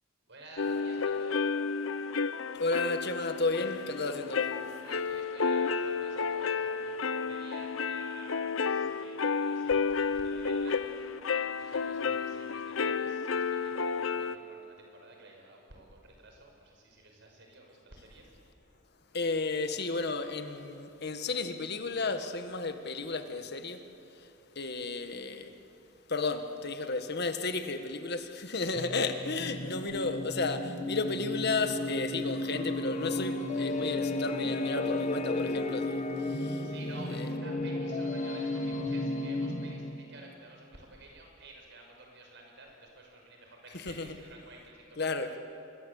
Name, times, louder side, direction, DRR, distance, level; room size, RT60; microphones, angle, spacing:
voice 1, 0.3-1.5 4.8-18.3 29.1-29.3 36.4-45.4, right 2 dB, 65° right, 6.0 m, -51 dB
sound 1, 0.6-14.4, left 5 dB, 85° left, 0.8 m, -31 dB
voice 2, 2.5-4.5 19.1-23.8 24.1-25.5 26.1-36.7 37.1-37.3 43.7-44.1 45.0-45.3, left 3 dB, 55° left, 1.7 m, -33 dB
sound 2, 10.8-14.2, right 5 dB, 85° right, 4.8 m, -58 dB
sound 3, 28.7-40.1, left 2 dB, 40° left, 1.5 m, -33 dB
26.0 x 22.5 x 8.4 m
head